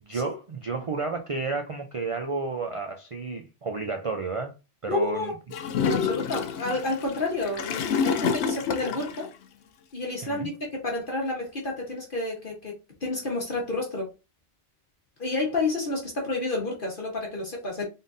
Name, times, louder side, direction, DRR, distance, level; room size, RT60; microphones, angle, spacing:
voice 1, 0.0-4.5 4.8-5.3 10.2-10.5, right 4 dB, 45° right, 0.4 m, -31 dB
voice 2, 4.9-5.3 5.8-9.3 9.9-10.5 10.8-14.1 15.2-17.8, left 2 dB, 50° left, 1.2 m, -30 dB
Gurgling / Toilet flush, 5.5-9.2, left 6 dB, 70° left, 0.8 m, -28 dB
3.7 x 3.6 x 2.6 m
omnidirectional pair, 1.2 m